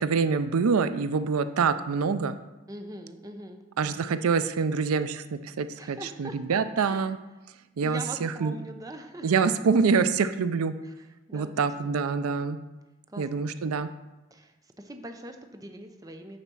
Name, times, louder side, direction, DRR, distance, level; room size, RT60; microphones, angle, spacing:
voice 1, 0.0-2.4 3.8-7.2 7.8-8.5 9.2-10.7 11.3-12.6 13.2-13.9, right 5 dB, 85° right, 12 dB, 0.4 m, -26 dB
voice 2, 2.7-3.6 5.8-7.1 7.8-9.3 10.8-10.9 11.3-11.5 13.1-13.3 14.3-16.4, right 1 dB, 15° right, 5 dB, 0.6 m, -42 dB
8.9 x 4.1 x 6.1 m, 1.0 s
head